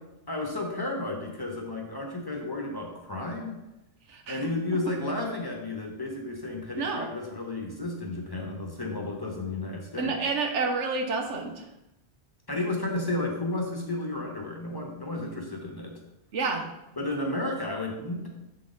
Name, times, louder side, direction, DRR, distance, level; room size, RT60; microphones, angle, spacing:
voice 1, 0.3-3.6 4.3-10.2 12.5-16.0 17.0-18.3, left 2 dB, 20° left, 0 dB, 0.9 m, -32 dB
voice 2, 4.1-4.5 6.8-7.1 10.0-11.6 16.3-16.7, right 4 dB, 85° right, 4 dB, 1.1 m, -29 dB
7.7 x 3.8 x 3.8 m, 0.93 s
omnidirectional pair, 1.2 m